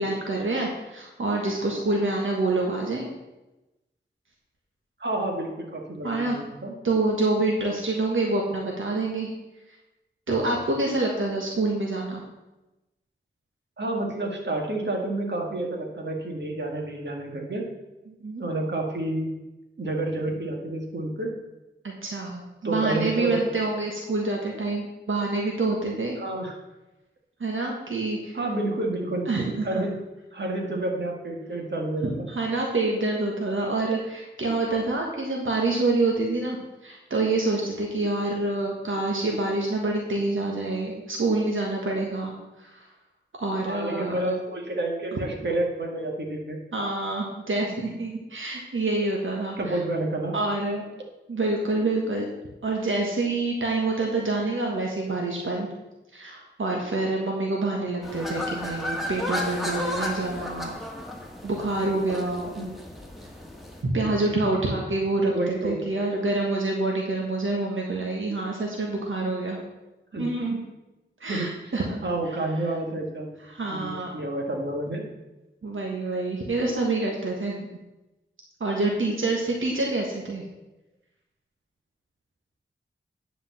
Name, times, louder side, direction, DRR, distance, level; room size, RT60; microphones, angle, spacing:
voice 1, 0.0-3.1 6.0-6.4 6.8-9.3 10.3-12.2 18.2-18.4 21.8-26.2 27.4-28.4 29.3-29.8 32.0-36.6 36.8-42.8 43.4-44.2 45.1-45.2 46.7-49.8 50.3-50.9 51.3-52.2 52.6-55.7 56.1-60.7 61.4-62.5 63.8-69.6 70.2-70.7 71.2-72.0 73.4-74.1 75.6-77.7 78.6-80.4, right 2 dB, 85° right, -1 dB, 1.5 m, -27 dB
voice 2, 5.0-6.7 13.8-17.6 18.4-19.3 19.8-21.3 22.6-23.4 26.2-26.6 28.3-29.3 29.6-29.9 30.3-32.3 43.7-46.6 49.6-50.3 62.6-62.7 65.3-65.8 70.1-70.2 71.2-71.7 72.0-73.4 73.7-75.0, right 2 dB, 60° right, 0 dB, 1.9 m, -29 dB
sound 1, 58.0-63.8, left 1 dB, ahead, 1.7 m, -33 dB
9.9 x 5.0 x 7.3 m, 1.0 s
wide cardioid pair, 85°, 20 cm